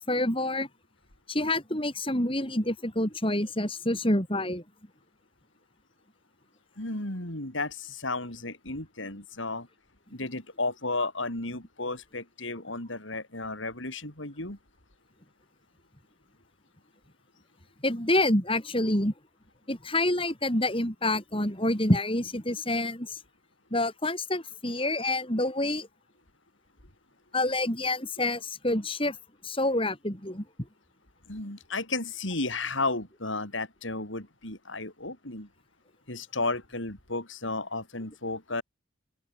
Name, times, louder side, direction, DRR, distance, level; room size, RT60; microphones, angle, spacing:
voice 1, 0.1-0.7 1.3-4.6 17.8-19.1 19.7-23.2 23.7-25.9 27.3-29.2 29.4-30.4, left 1 dB, 25° left, 6.6 m, -27 dB
voice 2, 6.8-9.7 10.1-14.6 31.3-35.5 36.1-38.6, left 3 dB, 75° left, 6.6 m, -33 dB
open air
head